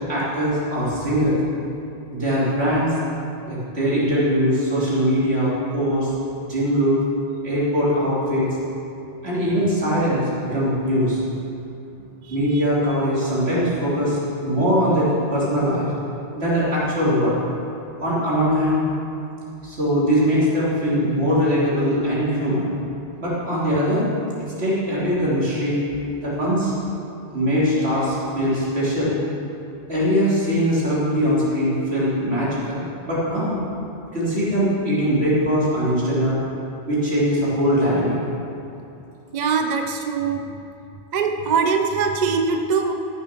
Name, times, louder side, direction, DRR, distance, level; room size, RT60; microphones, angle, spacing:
voice 1, 0.1-1.4 2.1-2.9 3.5-6.1 6.5-7.0 7.4-8.5 9.2-11.2 12.3-15.9 16.3-17.3 18.0-18.8 19.6-22.7 23.2-24.1 24.6-25.8 26.2-26.7 27.3-29.2 29.9-33.6 34.1-36.4 36.9-38.1, equal, 70° right, -8 dB, 3.6 m, -21 dB
voice 2, 39.3-40.6 41.1-42.9, right 5 dB, 45° right, 5 dB, 0.6 m, -22 dB
13.5 x 7.2 x 6.0 m, 2.7 s
omnidirectional pair, 1.1 m